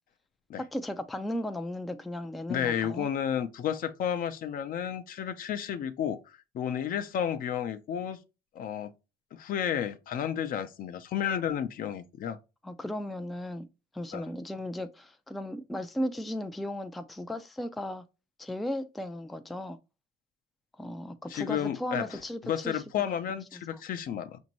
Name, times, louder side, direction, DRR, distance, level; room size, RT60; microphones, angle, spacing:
voice 1, 0.6-3.1 12.6-13.7 13.9-18.0 18.4-19.8 20.8-23.2 23.5-23.6, left 1 dB, ahead, 0.3 m, -36 dB
voice 2, 2.5-8.2 8.5-8.9 9.3-12.4 14.1-14.2 21.3-24.4, left 9 dB, 55° left, 0.6 m, -32 dB
5.2 x 2.6 x 2.9 m
cardioid pair, 110°, 17 cm